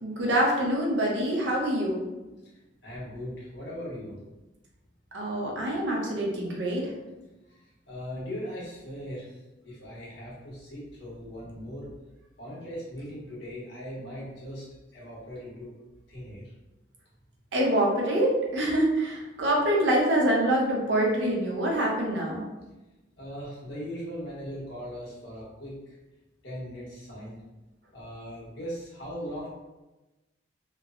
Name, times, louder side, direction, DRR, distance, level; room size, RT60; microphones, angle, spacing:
voice 1, 0.0-2.0 5.1-6.8 17.5-22.4, right 1 dB, 85° right, -2 dB, 0.7 m, -25 dB
voice 2, 2.8-4.2 7.5-7.6 7.9-9.4 9.6-11.9 12.4-14.6 14.9-15.7 16.1-16.5 23.2-25.8 26.4-27.4 27.9-29.5, equal, 80° left, -6 dB, 1.1 m, -39 dB
3.0 x 2.0 x 2.4 m, 1.1 s
head